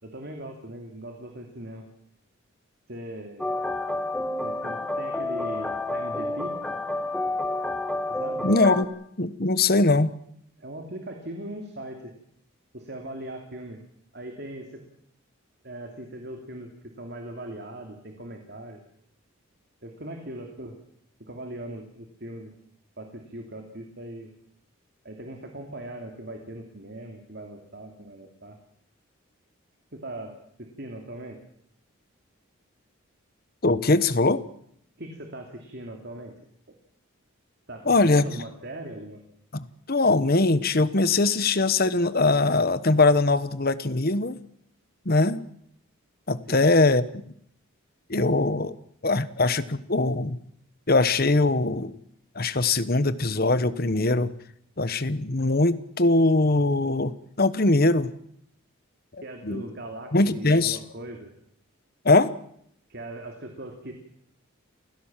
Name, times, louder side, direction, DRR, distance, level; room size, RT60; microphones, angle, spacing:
voice 1, 0.0-1.9 2.9-3.5 4.4-6.6 8.1-8.5 10.6-12.1 12.7-13.8 14.1-14.8 15.6-18.8 19.8-20.8 21.2-22.5 23.0-24.3 25.0-28.6 29.9-31.4 35.0-36.3 36.7-36.8 37.7-39.2 46.5-46.6 59.2-61.3 62.9-63.9, right 1 dB, 50° right, 4 dB, 2.8 m, -39 dB
sound 1, 3.4-8.8, left 2 dB, 5° left, 1.9 m, -29 dB
voice 2, 8.4-8.9 9.2-10.1 33.6-34.4 37.9-38.3 39.5-44.4 45.0-45.4 46.3-47.0 48.1-48.7 49.0-50.4 50.9-52.0 52.3-54.3 54.8-58.1 59.4-59.6 60.1-60.8 62.0-62.3, left 2 dB, 45° left, 14 dB, 1.2 m, -21 dB
29.0 x 16.5 x 7.5 m, 0.70 s
head